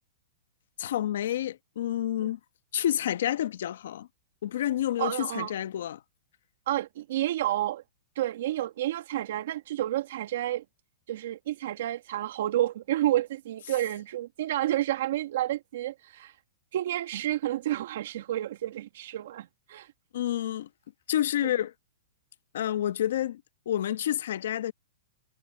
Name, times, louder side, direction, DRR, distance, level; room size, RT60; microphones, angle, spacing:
voice 1, 0.8-2.4 2.7-4.1 4.4-6.0 20.1-20.7 21.1-21.7 22.5-23.4 23.7-24.7, left 11 dB, 70° left, 1.0 m, -29 dB
voice 2, 5.0-5.5 6.7-7.8 8.1-10.6 11.1-16.4 16.7-19.9 21.4-21.5, right 13 dB, 65° right, 1.2 m, -30 dB
hypercardioid pair, 145°, 0 cm